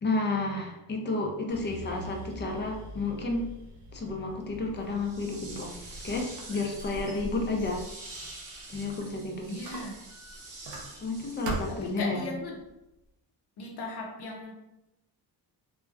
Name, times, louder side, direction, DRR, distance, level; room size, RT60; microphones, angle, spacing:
voice 1, 0.0-3.5 3.9-5.7 6.0-7.8 8.7-9.5 11.0-12.3, left 2 dB, 25° left, 2 dB, 0.4 m, -31 dB
sound 1, 1.5-11.7 12.1-12.9, left 1 dB, 20° right, 0.8 m, -48 dB
sound 2, 4.9-12.1, right 2 dB, 45° right, 0.9 m, -46 dB
Squeak, 5.5-9.2 9.6-11.2 11.4-12.0, right 1 dB, 80° right, 0.6 m, -41 dB
voice 2, 9.5-9.9 11.7-12.6 13.6-14.5, left 3 dB, 65° left, 1 dB, 0.7 m, -37 dB
2.6 x 2.1 x 2.3 m, 0.92 s
cardioid pair, 100°, 43 cm